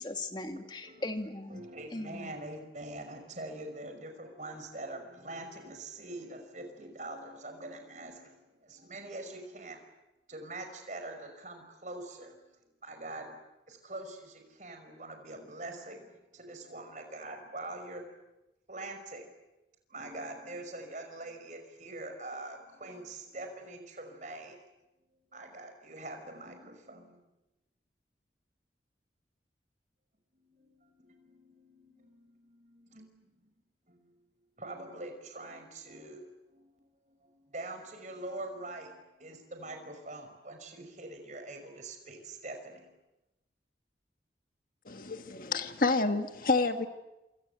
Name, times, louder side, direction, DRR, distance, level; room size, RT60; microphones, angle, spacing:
voice 1, 0.0-1.6 1.9-2.3, left 2 dB, 25° left, 6 dB, 2.3 m, -38 dB
voice 2, 1.5-9.9 10.3-12.4 12.8-13.4 13.7-18.1 18.7-19.3 19.9-24.6 25.3-27.2 30.3-33.5 33.9-34.2 34.6-42.9 46.7-46.8, right 2 dB, 45° right, 5 dB, 5.3 m, -44 dB
voice 3, 44.8-46.9, left 3 dB, 50° left, 8 dB, 1.6 m, -29 dB
27.5 x 26.5 x 8.0 m, 0.98 s
head